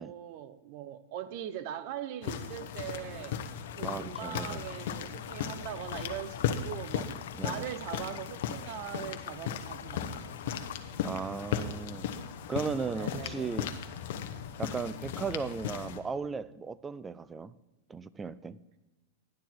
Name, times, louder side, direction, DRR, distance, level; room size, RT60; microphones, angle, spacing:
voice 1, 0.0-3.4 3.8-7.1 7.4-10.6 12.9-13.5, right 10 dB, 45° right, 0.7 m, -41 dB
sound 1, 2.2-16.0, left 8 dB, 60° left, 1.0 m, -37 dB
sound 2, 3.6-10.7, left 10 dB, 80° left, 0.5 m, -46 dB
voice 2, 3.8-4.6 7.4-7.7 11.0-12.1 12.5-13.7 14.6-17.5 17.9-18.6, right 5 dB, 15° right, 0.3 m, -36 dB
11.5 x 9.3 x 4.5 m
supercardioid pair, 150°, 0 cm